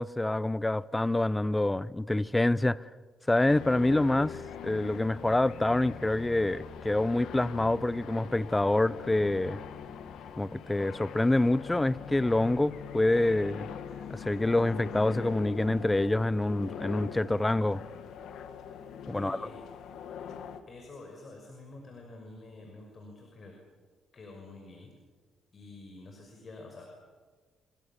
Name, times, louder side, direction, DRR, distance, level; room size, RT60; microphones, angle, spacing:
voice 1, 0.0-2.9 3.3-9.6 10.4-13.7 14.1-17.8 19.1-19.4, left 2 dB, 15° left, 0.7 m, -27 dB
sound 1, 3.5-20.6, left 7 dB, 80° left, 2.0 m, -42 dB
voice 2, 19.1-19.6 20.7-23.6 24.1-24.9 25.5-26.9, left 2 dB, 45° left, 6.0 m, -48 dB
28.5 x 23.5 x 7.4 m
cardioid pair, 90°, 0 cm